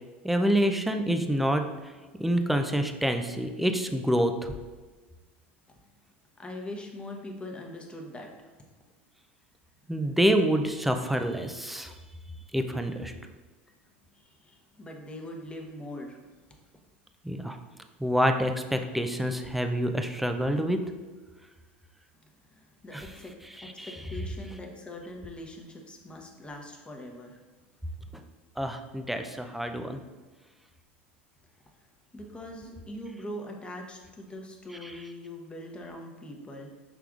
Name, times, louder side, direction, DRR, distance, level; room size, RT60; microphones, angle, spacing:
voice 1, 0.2-1.6 2.2-4.5 9.9-11.9 12.5-13.1 17.2-17.6 18.0-20.8 22.9-23.0 23.6-23.9 28.6-30.0 34.8-35.0, equal, ahead, 6 dB, 0.4 m, -27 dB
voice 2, 6.4-8.5 14.1-16.2 22.4-23.3 23.6-27.4 32.1-36.7, left 1 dB, 15° left, 1 dB, 0.9 m, -42 dB
6.1 x 3.3 x 2.4 m, 1.3 s
hypercardioid pair, 85°, 6 cm